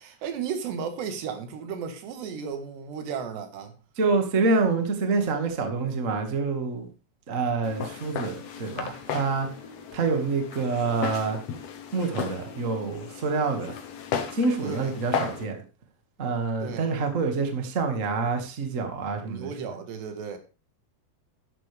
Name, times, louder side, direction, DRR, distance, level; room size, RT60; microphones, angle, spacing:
voice 1, 0.0-3.7 14.6-14.9 16.6-16.9 19.3-20.4, right 6 dB, 80° right, 3.8 m, -34 dB
voice 2, 4.0-6.9 7.3-9.5 9.9-11.4 11.9-13.8 14.3-15.6 16.2-19.7, right 4 dB, 45° right, 0.9 m, -27 dB
Walk footsteps, 7.6-15.4, left 7 dB, 80° left, 1.4 m, -35 dB
12.0 x 10.5 x 3.5 m
omnidirectional pair, 4.8 m